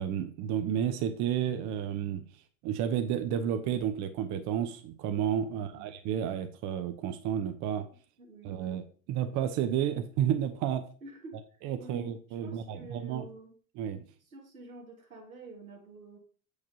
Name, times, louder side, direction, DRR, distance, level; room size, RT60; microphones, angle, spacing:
voice 1, 0.0-2.2 2.6-7.9 8.4-8.8 9.1-10.9 11.6-13.3 13.8-14.0, right 9 dB, 45° right, 9 dB, 0.7 m, -31 dB
voice 2, 5.5-5.9 8.2-8.6 11.0-13.6 14.3-16.2, right 2 dB, 90° right, 0 dB, 1.6 m, -48 dB
7.2 x 4.8 x 2.7 m, 0.41 s
figure-of-eight pair, 70°, 41 cm